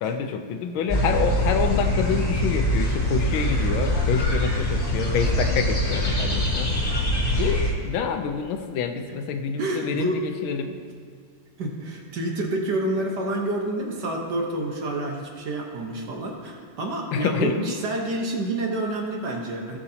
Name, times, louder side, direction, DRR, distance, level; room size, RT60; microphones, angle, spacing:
voice 1, 0.0-6.7 7.4-10.7 17.1-17.7, left 6 dB, 80° left, 7 dB, 1.5 m, -27 dB
sound 1, 0.9-7.7, equal, 25° left, 1.9 m, -23 dB
voice 2, 9.6-10.2 10.7-10.8 11.6-19.8, right 1 dB, 60° right, 0 dB, 1.6 m, -28 dB
17.0 x 6.1 x 2.8 m, 2.1 s
omnidirectional pair, 2.2 m